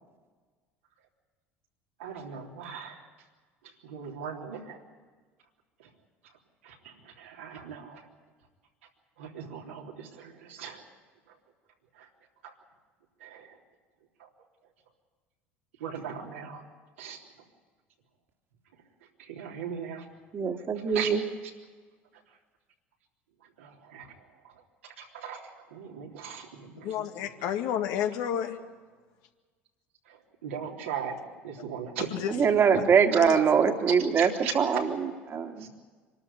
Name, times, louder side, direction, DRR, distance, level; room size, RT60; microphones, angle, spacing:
voice 1, 2.0-3.1 3.6-4.8 5.8-5.9 6.6-8.1 9.2-10.8 11.3-11.4 11.9-12.1 12.4-12.5 13.2-13.6 14.2-14.3 15.8-16.7 17.0-17.2 19.2-20.1 20.9-21.2 22.1-22.2 23.6-27.1 27.4-27.5 30.1-32.5 34.2-34.5 35.6-35.7, right 7 dB, 80° right, 0 dB, 3.5 m, -39 dB
voice 2, 20.3-21.2 32.3-35.7, right 6 dB, 40° right, 5 dB, 2.4 m, -23 dB
voice 3, 26.8-28.6 32.1-32.3 33.2-33.4, left 9 dB, 65° left, 5 dB, 2.1 m, -30 dB
25.5 x 13.0 x 10.0 m, 1.4 s
hypercardioid pair, 70°, 6 cm